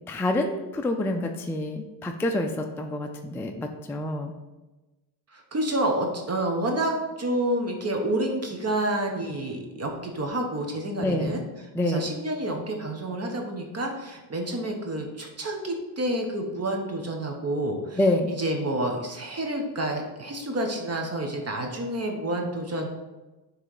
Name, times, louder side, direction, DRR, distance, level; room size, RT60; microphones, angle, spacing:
voice 1, 0.1-4.3 11.0-11.4 11.7-12.1 18.0-18.4, left 1 dB, 5° left, 3 dB, 0.4 m, -27 dB
voice 2, 5.3-11.4 11.8-18.0 18.3-22.9, right 1 dB, 30° right, 2 dB, 1.0 m, -29 dB
6.2 x 3.3 x 4.8 m, 1.1 s
cardioid pair, 95°, 48 cm